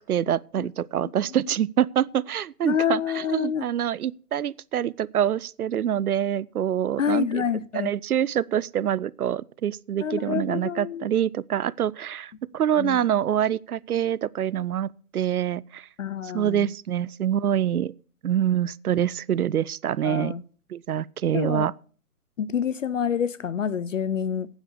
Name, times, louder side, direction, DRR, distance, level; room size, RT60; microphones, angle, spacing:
voice 1, 0.0-7.4 7.7-15.9 16.2-17.9 18.2-20.3 20.7-21.7, right 10 dB, 70° right, 0.5 m, -25 dB
voice 2, 2.6-3.7 7.0-7.9 10.0-11.1 12.8-13.0 16.0-16.7 20.0-20.4 21.3-21.7 22.4-24.5, left 8 dB, 55° left, 0.6 m, -27 dB
9.4 x 8.9 x 6.8 m
figure-of-eight pair, 135°, 47 cm